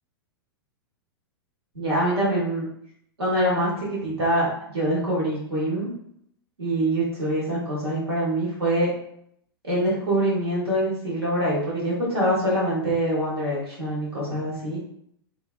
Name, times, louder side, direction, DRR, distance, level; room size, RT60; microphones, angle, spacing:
voice 1, 1.7-2.7 3.2-5.9 6.6-8.9 9.6-14.8, right 1 dB, 80° right, -6 dB, 1.1 m, -24 dB
2.4 x 2.2 x 2.3 m, 0.71 s
figure-of-eight pair, 100°, 13 cm